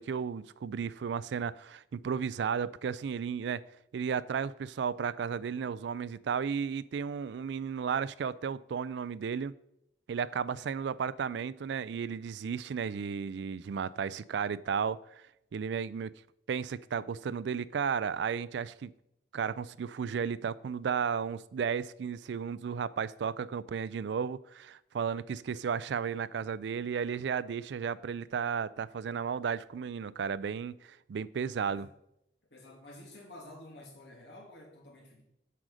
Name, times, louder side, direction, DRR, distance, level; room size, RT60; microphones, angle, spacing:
voice 1, 0.0-3.6 3.9-9.5 10.1-15.2 15.5-16.1 16.5-18.9 19.3-31.9, right 6 dB, 70° right, 0.3 m, -34 dB
voice 2, 32.5-35.3, left 1 dB, 65° left, 2.2 m, -50 dB
7.7 x 4.9 x 6.3 m
head